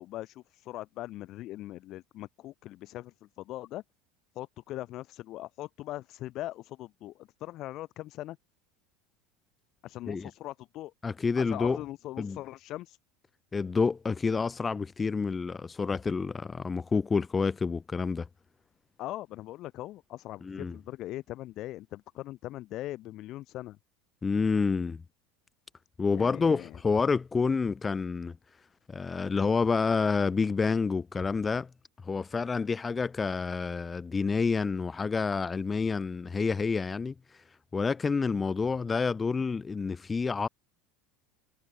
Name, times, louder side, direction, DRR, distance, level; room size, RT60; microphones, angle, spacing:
voice 1, 0.0-3.8 4.3-8.4 9.8-10.9 11.4-13.0 19.0-23.8 26.1-26.8, left 15 dB, 55° left, 1.6 m, -40 dB
voice 2, 11.0-11.8 12.2-12.4 13.5-18.3 20.4-20.8 24.2-25.0 26.0-28.4 28.9-31.7 32.0-37.1 37.7-40.5, left 4 dB, 20° left, 0.8 m, -28 dB
hypercardioid pair, 90°, 0 cm